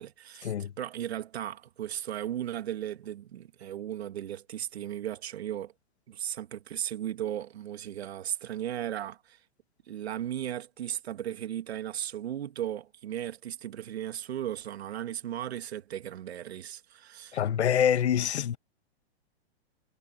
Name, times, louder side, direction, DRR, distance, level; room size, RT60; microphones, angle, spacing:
voice 1, 0.0-5.7 6.1-9.4 9.9-17.4, right 11 dB, 70° right, 2.4 m, -36 dB
voice 2, 17.3-18.6, left 9 dB, 80° left, 1.9 m, -25 dB
hypercardioid pair, 175°, 33 cm